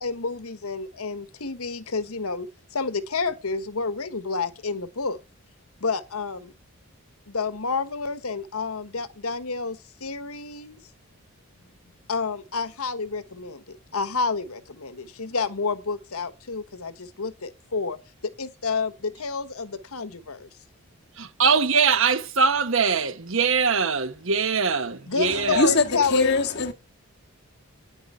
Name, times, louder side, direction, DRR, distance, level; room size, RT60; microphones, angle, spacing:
voice 1, 0.0-5.2 5.8-6.5 7.3-10.8 12.1-18.0 18.2-20.5 25.1-26.4, left 4 dB, 75° left, 1.4 m, -29 dB
voice 2, 21.2-25.7, right 5 dB, 60° right, 1.1 m, -22 dB
voice 3, 25.2-26.7, left 3 dB, 50° left, 1.9 m, -23 dB
10.0 x 9.9 x 5.7 m
head